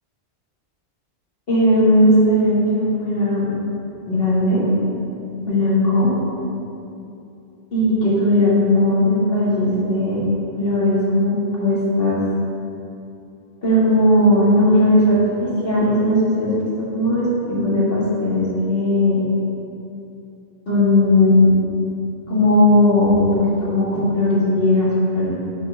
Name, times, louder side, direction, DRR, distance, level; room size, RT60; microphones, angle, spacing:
voice 1, 1.5-3.5 4.1-4.7 5.4-6.1 7.7-10.2 10.6-12.2 13.6-19.2 20.7-21.5 22.3-25.3, left 1 dB, 60° left, -8 dB, 2.3 m, -17 dB
6.5 x 4.3 x 6.6 m, 2.8 s
omnidirectional pair, 1.1 m